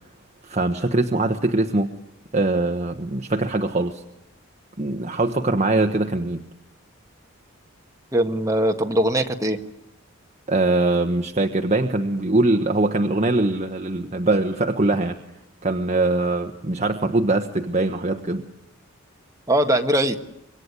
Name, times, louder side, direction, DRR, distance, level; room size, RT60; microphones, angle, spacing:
voice 1, 0.4-1.9 2.3-4.0 4.8-6.4 10.5-15.2 15.6-18.4, right 2 dB, 30° right, 5 dB, 1.2 m, -22 dB
voice 2, 8.1-9.6 19.5-20.2, right 1 dB, 15° right, 4 dB, 1.6 m, -21 dB
26.0 x 22.5 x 9.7 m, 0.81 s
head